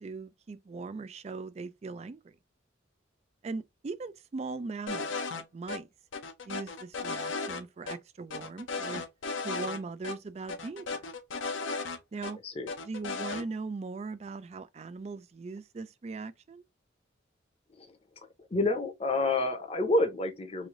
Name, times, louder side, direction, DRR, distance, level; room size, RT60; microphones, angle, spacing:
voice 1, 0.0-2.4 3.4-5.9 6.5-9.0 9.4-11.0 12.1-12.4 12.8-16.6, right 4 dB, 35° right, 0.3 m, -39 dB
sound 1, 4.9-5.4 5.7-5.8 6.1-7.6 7.9-8.0 8.3-9.8 10.0-10.2 10.5-12.3 12.7-13.4, left 4 dB, 80° left, 0.6 m, -35 dB
voice 2, 18.5-20.7, left 2 dB, 30° left, 0.7 m, -28 dB
3.2 x 2.6 x 3.7 m
head